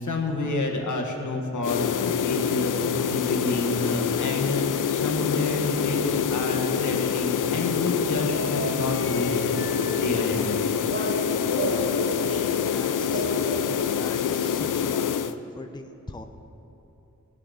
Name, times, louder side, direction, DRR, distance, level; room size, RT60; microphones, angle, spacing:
voice 1, 0.0-10.6, left 2 dB, 70° left, 2 dB, 1.5 m, -29 dB
sound 1, 1.6-15.4, left 8 dB, 90° left, 0.5 m, -26 dB
sound 2, 7.2-14.2, right 2 dB, 55° right, 1.9 m, -34 dB
voice 2, 11.5-11.9 12.7-16.3, left 2 dB, 15° left, 5 dB, 0.6 m, -41 dB
17.0 x 8.8 x 5.1 m, 2.9 s
wide cardioid pair, 85°, 31 cm